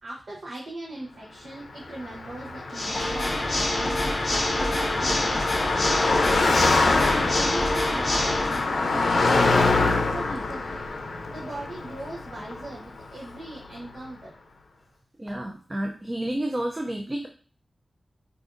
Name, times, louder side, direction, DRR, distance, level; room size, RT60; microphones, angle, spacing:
voice 1, 0.0-6.2 6.7-10.8 11.3-14.3, right 2 dB, 65° right, -4 dB, 0.7 m, -39 dB
Car passing by, 1.8-13.4, left 3 dB, 85° left, 0.5 m, -25 dB
Water / Mechanisms, 2.7-8.7, left 1 dB, 35° left, 0.6 m, -26 dB
voice 2, 15.2-17.3, right 1 dB, 25° right, 2 dB, 0.4 m, -30 dB
4.8 x 2.5 x 2.5 m, 0.40 s
wide cardioid pair, 110°, 0 cm